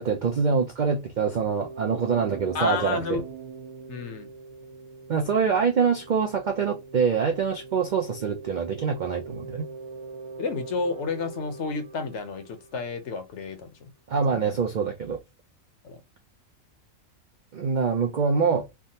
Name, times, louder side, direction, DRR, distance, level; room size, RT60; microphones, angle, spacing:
voice 1, 0.0-3.2 5.1-9.7 14.1-15.2 17.5-18.7, right 5 dB, 65° right, 0.4 m, -25 dB
sound 1, 1.5-13.1, right 4 dB, 40° right, 0.7 m, -42 dB
voice 2, 2.5-3.2 3.9-4.3 10.4-13.9 14.3-14.6 15.8-16.0, left 4 dB, 65° left, 0.9 m, -31 dB
3.4 x 2.1 x 2.6 m
omnidirectional pair, 1.4 m